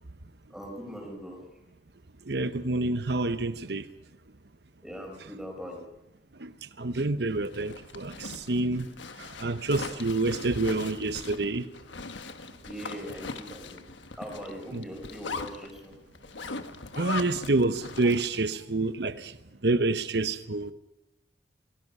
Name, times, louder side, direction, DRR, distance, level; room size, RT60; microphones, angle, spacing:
voice 1, 0.5-1.4 4.8-5.8 9.7-10.0 12.6-13.8 14.2-15.9, equal, 5° right, 5.0 m, -41 dB
voice 2, 2.3-3.8 6.4-6.5 6.8-8.9 9.2-11.7 14.7-14.9 17.0-19.3 19.6-20.7, right 2 dB, 65° right, 1.0 m, -28 dB
Zipper (clothing), 7.3-18.5, left 4 dB, 90° left, 1.3 m, -40 dB
26.5 x 18.5 x 5.6 m
head